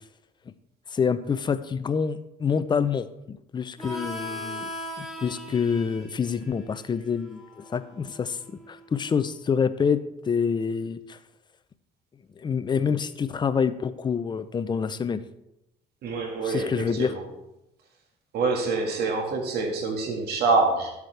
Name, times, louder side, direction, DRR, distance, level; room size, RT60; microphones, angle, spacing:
voice 1, 0.9-4.7 5.0-8.4 8.7-11.2 12.4-15.2 16.4-17.1, left 6 dB, 25° left, 12 dB, 0.5 m, -27 dB
Harmonica, 3.8-9.1, equal, ahead, 2.5 m, -39 dB
voice 2, 16.0-17.2 18.3-20.9, right 3 dB, 70° right, 2 dB, 1.8 m, -26 dB
12.0 x 8.1 x 3.4 m, 0.89 s
cardioid pair, 110°, 17 cm